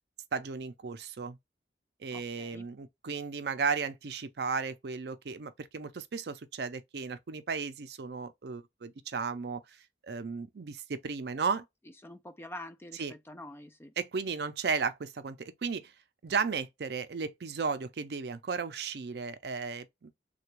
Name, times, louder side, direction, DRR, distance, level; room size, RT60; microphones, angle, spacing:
voice 1, 0.3-1.4 2.0-9.6 10.0-11.6 13.0-13.1 14.0-15.9 16.2-20.1, right 5 dB, 60° right, 0.5 m, -34 dB
voice 2, 2.1-2.7 12.0-13.9, left 1 dB, 15° left, 0.4 m, -46 dB
3.3 x 2.2 x 3.0 m
head